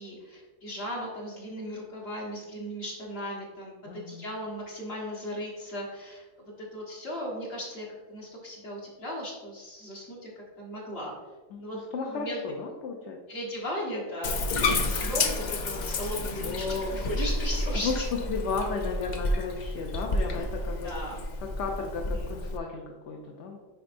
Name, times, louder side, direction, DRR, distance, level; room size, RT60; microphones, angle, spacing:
voice 1, 0.0-6.2 6.7-11.2 11.6-11.8 12.1-12.6 13.3-14.4 14.8-18.1 20.8-21.2 22.1-22.3, equal, 45° left, -3 dB, 1.7 m, -37 dB
voice 2, 3.8-4.2 11.5-11.6 11.9-13.2 14.8-15.1 16.2-17.0 17.8-18.0 18.3-20.9 21.6-23.6, left 4 dB, 60° left, 1 dB, 0.9 m, -34 dB
Bathtub (filling or washing), 14.2-22.6, left 2 dB, 85° left, 0.4 m, -30 dB
9.4 x 4.1 x 2.6 m, 1.3 s
omnidirectional pair, 1.5 m